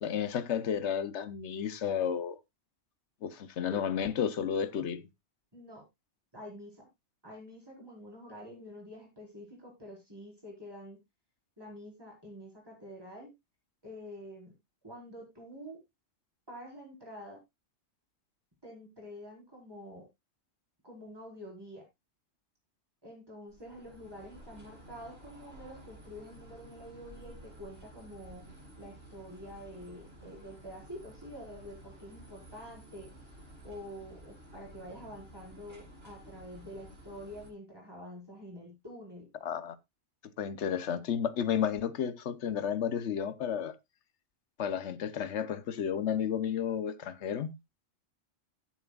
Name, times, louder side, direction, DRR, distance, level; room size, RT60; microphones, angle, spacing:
voice 1, 0.0-2.4 3.2-5.1 39.4-39.8 40.4-43.7 44.6-47.6, left 8 dB, 90° left, 1.1 m, -32 dB
voice 2, 5.5-5.8 6.3-6.9 7.2-11.0 11.6-13.3 13.8-14.5 14.8-15.8 16.5-17.4 18.6-20.1 20.8-21.8 23.0-28.5 28.8-33.1 33.6-39.3, equal, 20° right, 4.5 m, -47 dB
sound 1, 23.5-37.5, right 1 dB, 60° right, 6.0 m, -53 dB
16.0 x 7.3 x 2.3 m
omnidirectional pair, 1.1 m